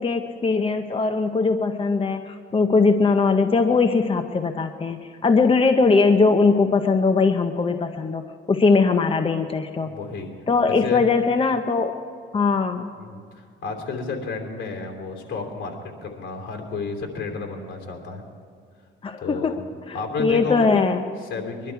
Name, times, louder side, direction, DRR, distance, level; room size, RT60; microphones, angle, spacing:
voice 1, 0.0-9.9 10.5-11.9 12.3-12.9 19.0-19.6 19.9-21.0, left 4 dB, 30° left, 7 dB, 0.8 m, -20 dB
voice 2, 9.8-10.3 10.7-11.0 13.0-18.2 19.2-19.6 19.9-20.9 21.2-21.7, left 4 dB, 70° left, 2 dB, 3.0 m, -31 dB
22.0 x 11.5 x 4.7 m, 2.3 s
cardioid pair, 90°, 20 cm